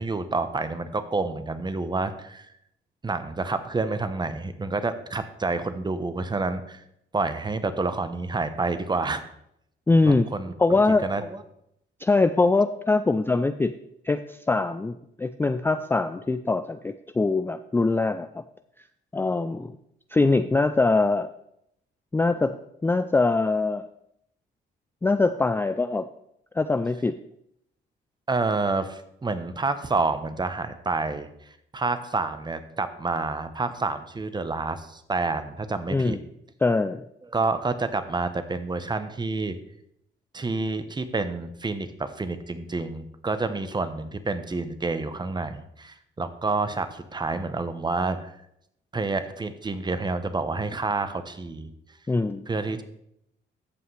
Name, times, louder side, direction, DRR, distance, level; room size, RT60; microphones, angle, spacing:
voice 1, 0.0-2.5 3.0-6.8 7.1-9.2 10.0-11.4 28.3-36.2 37.3-39.6 40.3-48.3 48.9-51.7 52.5-52.8, right 3 dB, 20° right, 10 dB, 0.9 m, -28 dB
voice 2, 9.9-10.3 10.6-11.0 12.0-13.7 14.0-18.4 19.1-19.7 20.1-21.3 22.1-23.9 25.0-26.1 26.6-27.2 35.9-36.2 36.6-37.0 52.1-52.4, left 3 dB, 10° left, 10 dB, 0.3 m, -23 dB
15.0 x 5.7 x 3.3 m, 0.75 s
cardioid pair, 90°, 20 cm